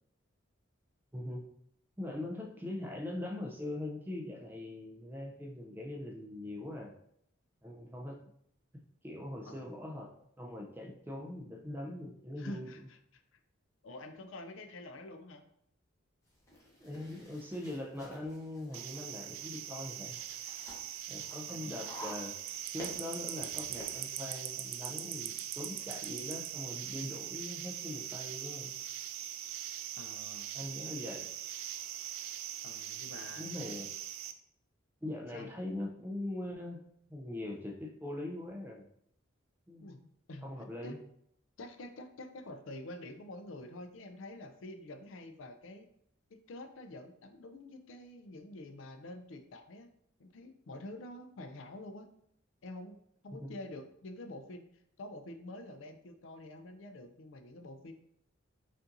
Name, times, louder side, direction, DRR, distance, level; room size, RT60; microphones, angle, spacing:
voice 1, 1.1-1.5 2.0-6.9 7.6-8.2 9.0-12.7 16.8-20.2 21.1-22.4 22.7-28.7 30.5-31.3 33.4-33.9 35.0-36.8 37.1-38.8 39.7-40.1 40.4-41.0 53.3-53.5, left 1 dB, 10° right, 1 dB, 0.4 m, -42 dB
voice 2, 12.4-13.2 13.8-15.4 21.5-21.8 29.9-30.6 32.6-33.5 35.3-35.5 39.8-40.0 40.3-41.0 41.6-45.9 46.3-49.9 50.2-52.1 52.6-53.0 53.2-54.6 55.0-57.9, left 1 dB, 75° left, 7 dB, 0.4 m, -47 dB
sound 1, 16.3-24.0, equal, 15° left, 0.8 m, -52 dB
sound 2, 18.7-34.3, right 11 dB, 85° right, 0.3 m, -41 dB
5.3 x 2.6 x 2.5 m, 0.72 s
head